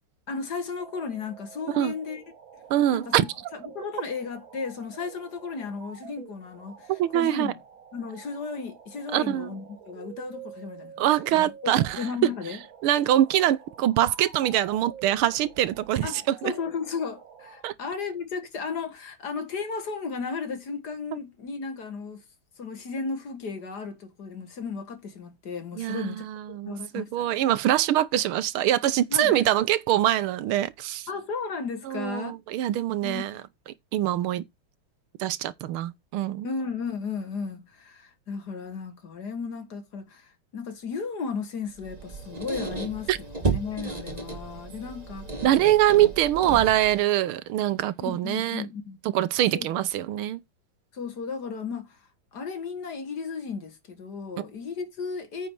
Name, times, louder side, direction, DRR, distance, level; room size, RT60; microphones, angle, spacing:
voice 1, 0.3-2.2 2.9-3.2 3.5-7.6 7.9-12.6 16.0-22.2 22.6-26.3 26.7-27.4 29.1-29.4 31.1-32.4 33.0-33.2 36.4-45.3 48.0-49.0 49.5-49.7 50.9-55.5, left 5 dB, 50° left, 1.9 m, -35 dB
sound 1, 0.8-17.6, right 7 dB, 65° right, 2.1 m, -48 dB
voice 2, 2.7-3.2 6.9-7.5 9.1-9.5 11.0-12.0 12.8-16.5 17.6-17.7 25.8-31.1 31.9-33.4 33.9-34.4 35.2-36.5 43.1-43.2 45.4-48.6 49.1-50.4, right 12 dB, 80° right, 1.6 m, -24 dB
Squeak, 41.8-47.0, right 4 dB, 20° right, 1.9 m, -33 dB
9.3 x 5.6 x 4.6 m
omnidirectional pair, 2.4 m